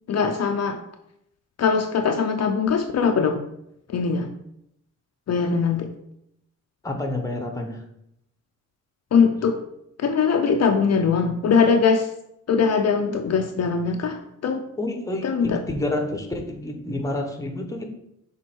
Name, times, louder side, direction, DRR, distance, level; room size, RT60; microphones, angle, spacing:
voice 1, 0.1-0.8 1.6-3.4 3.9-4.3 5.3-5.9 9.1-9.6 10.0-12.1 12.5-14.7 15.2-15.6, left 5 dB, 55° left, 5 dB, 0.5 m, -21 dB
voice 2, 6.8-7.8 14.8-17.9, left 1 dB, 10° left, 4 dB, 0.9 m, -29 dB
6.1 x 3.6 x 4.4 m, 0.77 s
wide cardioid pair, 135°, 32 cm